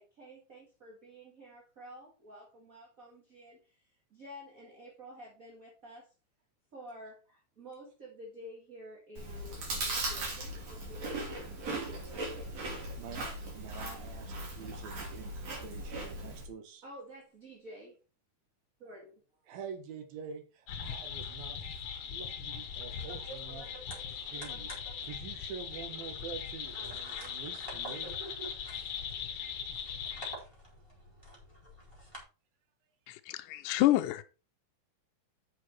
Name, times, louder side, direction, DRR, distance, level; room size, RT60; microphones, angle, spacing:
voice 1, 0.0-6.1 6.7-11.6 11.8-12.3 16.8-18.0 18.8-19.1 19.4-19.5, equal, 30° right, 1.7 m, -51 dB
Chewing mastication, 9.2-16.5, right 2 dB, 45° right, 3.6 m, -38 dB
voice 2, 13.0-16.8 19.5-21.8 22.1-28.2, right 6 dB, 75° right, 3.3 m, -47 dB
sound 1, 20.7-30.3, left 7 dB, 60° left, 1.6 m, -40 dB
sound 2, 22.5-32.2, right 1 dB, 5° right, 3.9 m, -49 dB
voice 3, 33.1-34.2, left 16 dB, 85° left, 1.8 m, -28 dB
8.2 x 6.6 x 4.5 m
omnidirectional pair, 4.2 m